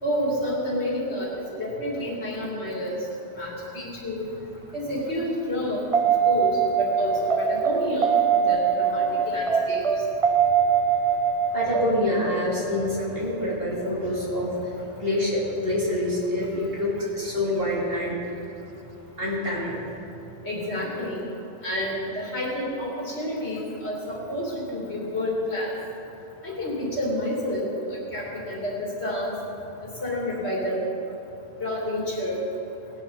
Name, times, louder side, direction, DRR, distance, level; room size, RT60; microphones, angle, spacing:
voice 1, 0.0-3.0 3.3-4.2 4.7-5.9 6.2-9.8 20.4-21.3 21.6-25.7 26.4-29.3 29.8-30.9 31.6-32.4, left 1 dB, 70° left, -4 dB, 3.1 m, -29 dB
sound 1, 5.9-14.3 17.0-17.1, right 6 dB, 35° right, 0.7 m, -23 dB
voice 2, 11.5-14.5 15.0-18.3 19.2-19.8, left 1 dB, 55° right, -5 dB, 3.0 m, -26 dB
19.0 x 10.5 x 4.0 m, 2.9 s
omnidirectional pair, 1.2 m